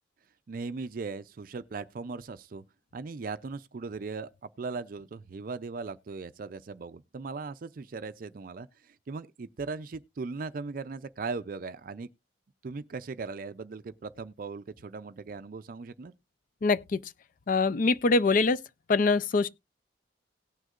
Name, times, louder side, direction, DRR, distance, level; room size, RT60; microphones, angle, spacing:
voice 1, 0.5-2.6 2.9-4.3 4.6-12.1 12.6-16.1, right 4 dB, 50° right, 0.4 m, -38 dB
voice 2, 16.6-17.1 17.5-18.6 18.9-19.5, left 3 dB, 45° left, 0.4 m, -24 dB
18.0 x 6.3 x 2.4 m
head